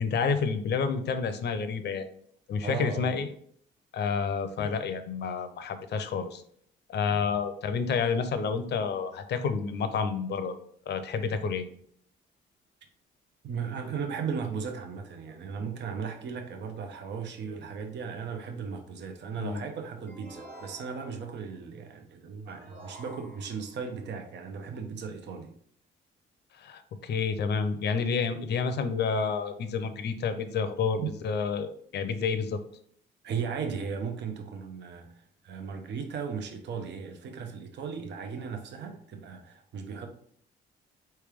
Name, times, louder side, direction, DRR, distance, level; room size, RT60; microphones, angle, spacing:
voice 1, 0.0-2.1 2.5-3.3 3.9-6.4 6.9-10.5 10.9-11.7 19.4-19.6 26.6-32.6, left 5 dB, 60° left, 0.6 m, -29 dB
voice 2, 2.6-3.1 7.1-7.3 13.4-25.5 31.0-31.1 33.2-40.1, right 6 dB, 65° right, 0.7 m, -36 dB
sound 1, 20.1-21.4 22.5-23.8, right 1 dB, 45° right, 1.5 m, -49 dB
4.5 x 3.3 x 3.5 m
cardioid pair, 90°, 20 cm